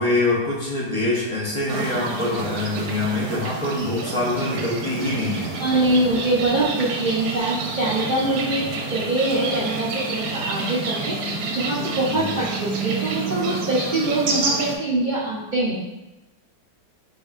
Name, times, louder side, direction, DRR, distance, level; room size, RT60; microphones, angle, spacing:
voice 1, 0.0-5.5 8.6-8.7 12.1-12.4, left 2 dB, 30° left, -6 dB, 0.6 m, -24 dB
sound 1, 1.7-14.8, right 4 dB, 90° right, 1.2 m, -29 dB
voice 2, 5.6-15.8, right 2 dB, 60° right, -6 dB, 0.5 m, -24 dB
7.0 x 2.6 x 2.4 m, 1.0 s
omnidirectional pair, 1.7 m